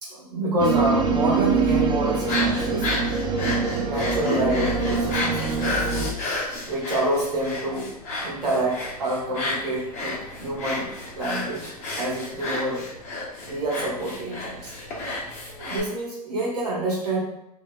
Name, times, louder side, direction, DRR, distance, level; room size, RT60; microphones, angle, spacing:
voice 1, 0.0-2.9 3.8-5.9 6.7-7.9 8.2-12.9 13.4-14.7 15.5-17.2, right 1 dB, 85° right, -4 dB, 1.2 m, -27 dB
sound 1, 0.6-6.1, right 4 dB, 25° right, 0.4 m, -24 dB
sound 2, 2.1-15.8, left 2 dB, 35° left, 1.1 m, -31 dB
3.0 x 2.9 x 2.3 m, 0.83 s
hypercardioid pair, 100°, 20 cm